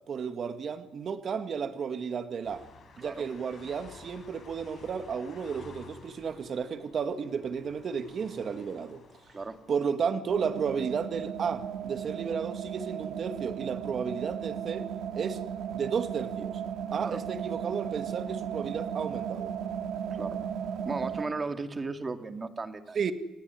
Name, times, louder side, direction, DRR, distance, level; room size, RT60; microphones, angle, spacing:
voice 1, 0.1-2.6 3.0-9.0 9.7-14.9 15.1-15.4 15.7-16.6 16.9-19.5 23.0-23.1, right 6 dB, 55° right, 9 dB, 2.1 m, -33 dB
sound 1, 2.4-9.9, left 5 dB, 55° left, 6.9 m, -53 dB
sound 2, 10.3-21.3, right 8 dB, 75° right, 2.6 m, -36 dB
voice 2, 20.8-23.0, right 3 dB, 30° right, 8 dB, 2.5 m, -35 dB
29.5 x 18.0 x 9.7 m, 1.1 s
cardioid pair, 90°, 0 cm